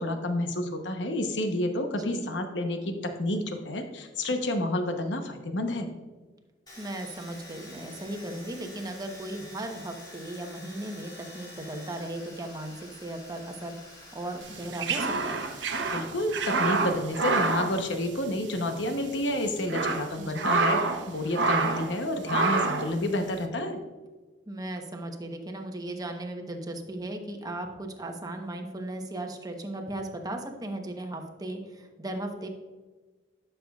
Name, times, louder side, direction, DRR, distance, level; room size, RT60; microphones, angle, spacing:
voice 1, 0.0-5.9 15.9-23.8, left 1 dB, 75° left, 5 dB, 0.9 m, -29 dB
voice 2, 1.9-2.3 6.8-12.7 13.0-13.8 14.1-15.4 20.2-20.6 24.5-32.5, right 1 dB, 20° right, 4 dB, 1.0 m, -37 dB
Domestic sounds home sounds, 6.7-16.0 16.2-17.1, left 1 dB, 25° left, 2.6 m, -48 dB
sound 1, 14.5-18.6 18.8-19.0 19.5-21.0 21.3-21.9 22.3-22.9, right 3 dB, 80° right, 0.8 m, -27 dB
12.0 x 6.7 x 2.4 m, 1.3 s
head